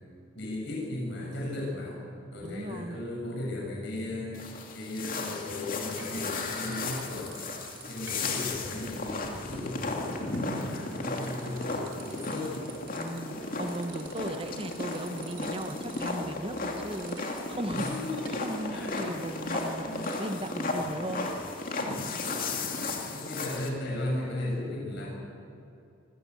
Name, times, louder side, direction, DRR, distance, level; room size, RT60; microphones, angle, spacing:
voice 1, 0.3-2.0 2.3-4.4 4.7-7.3 7.9-12.6 17.7-18.3 18.7-19.1 19.8-20.4 23.1-25.1, left 1 dB, 60° left, -3 dB, 7.3 m, -36 dB
voice 2, 2.4-3.0 13.0-17.9 18.2-21.7, right 1 dB, 25° right, 8 dB, 1.3 m, -37 dB
sound 1, 4.3-23.7, left 3 dB, 45° left, 2.8 m, -35 dB
sound 2, 6.0-7.0 7.3-20.2, right 5 dB, 75° right, 3.3 m, -51 dB
26.0 x 17.0 x 8.3 m, 2.6 s
head